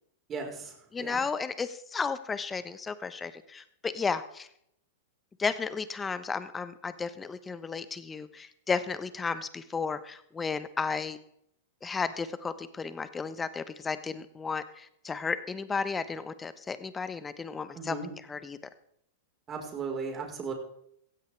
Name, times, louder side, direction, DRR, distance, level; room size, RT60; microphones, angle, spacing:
voice 1, 0.3-0.7 1.0-1.2 17.7-18.1 19.5-20.5, right 4 dB, 25° right, 2 dB, 4.5 m, -36 dB
voice 2, 0.9-4.5 5.4-11.2 11.8-18.0 18.3-18.6, left 5 dB, 15° left, 13 dB, 1.1 m, -33 dB
16.0 x 15.5 x 3.4 m, 0.71 s
hypercardioid pair, 115°, 0 cm